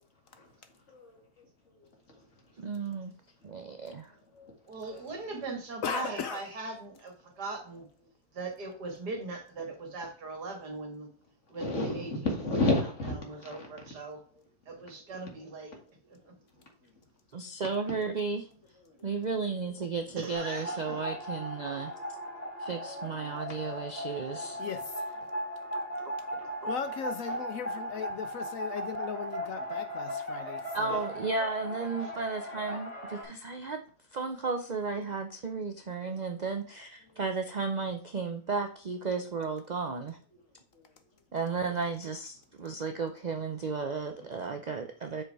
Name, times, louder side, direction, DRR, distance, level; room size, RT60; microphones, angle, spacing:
voice 1, 2.6-3.1 3.4-4.1 17.3-18.5 19.0-21.9 22.6-24.6 26.6-26.7 30.7-33.8 34.1-40.2 41.3-45.2, right 4 dB, 50° right, 0.5 m, -34 dB
voice 2, 4.7-7.9 8.3-11.1 11.5-12.1 13.2-14.2 14.7-15.8 16.1-16.3 20.2-21.0, right 3 dB, 80° right, 2.5 m, -40 dB
voice 3, 5.8-6.4 24.6-25.1 26.7-31.0, left 7 dB, 65° left, 1.0 m, -37 dB
voice 4, 11.6-13.2 13.4-13.7 15.1-15.2 23.1-23.3 27.3-27.4 30.9-31.0 32.0-32.1, left 2 dB, 45° left, 2.4 m, -31 dB
sound 1, 20.3-33.2, equal, 25° left, 3.7 m, -37 dB
6.6 x 5.2 x 4.7 m
omnidirectional pair, 1.7 m